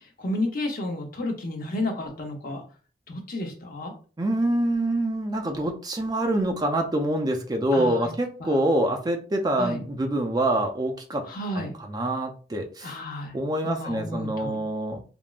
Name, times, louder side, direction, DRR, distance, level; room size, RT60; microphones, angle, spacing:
voice 1, 0.2-2.6 3.1-3.9 7.7-8.1 8.4-8.7 9.6-9.8 11.3-11.7 12.8-13.4 13.6-14.6, left 1 dB, 55° left, 3 dB, 0.7 m, -31 dB
voice 2, 4.2-11.3 11.5-12.9 13.3-15.0, right 1 dB, 20° right, 4 dB, 0.4 m, -26 dB
3.4 x 2.0 x 2.4 m, 0.37 s
head